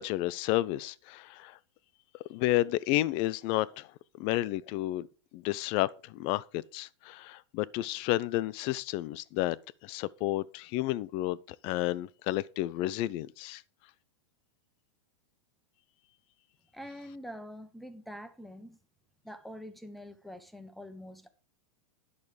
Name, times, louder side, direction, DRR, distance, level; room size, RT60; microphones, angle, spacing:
voice 1, 0.0-1.6 2.3-3.9 4.2-5.1 5.3-9.6 9.8-11.4 11.6-13.6, left 16 dB, 40° left, 0.5 m, -31 dB
voice 2, 16.7-18.8 19.2-21.3, equal, ahead, 1.0 m, -45 dB
11.0 x 6.3 x 5.1 m
supercardioid pair, 150°, 15 cm